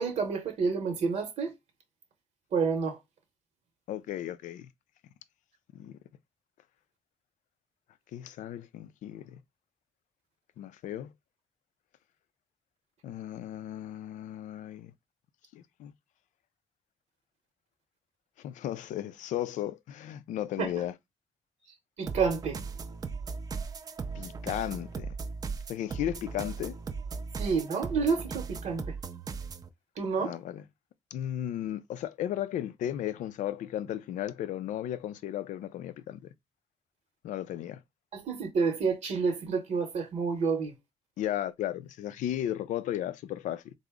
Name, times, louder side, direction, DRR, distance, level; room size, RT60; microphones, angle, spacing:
voice 1, 0.0-1.5 2.5-3.0 20.6-20.8 22.0-22.6 27.4-28.9 30.0-30.4 38.1-40.7, right 5 dB, 60° right, 0.8 m, -29 dB
voice 2, 3.9-4.7 5.7-6.0 8.1-9.4 10.6-11.1 13.0-14.9 15.5-15.9 18.4-20.9 24.1-25.1 25.7-26.8 30.2-30.6 31.1-36.3 37.2-37.8 41.2-43.7, left 12 dB, 80° left, 0.4 m, -35 dB
sound 1, 22.1-29.7, right 5 dB, 30° right, 0.4 m, -38 dB
3.7 x 2.0 x 3.5 m
cardioid pair, 140°, 13 cm